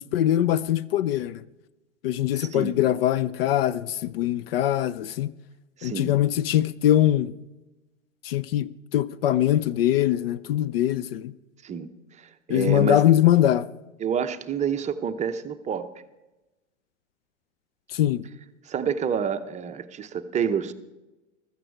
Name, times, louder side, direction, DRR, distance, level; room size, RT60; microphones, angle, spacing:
voice 1, 0.0-1.4 2.0-5.3 5.8-7.3 8.2-11.3 12.5-13.7 17.9-18.2, left 12 dB, 50° left, 0.5 m, -22 dB
voice 2, 2.3-2.8 5.8-6.1 11.6-11.9 12.2-13.0 14.0-15.9 18.7-20.7, right 7 dB, 20° right, 0.7 m, -28 dB
15.0 x 13.5 x 4.6 m
figure-of-eight pair, 95°, 38 cm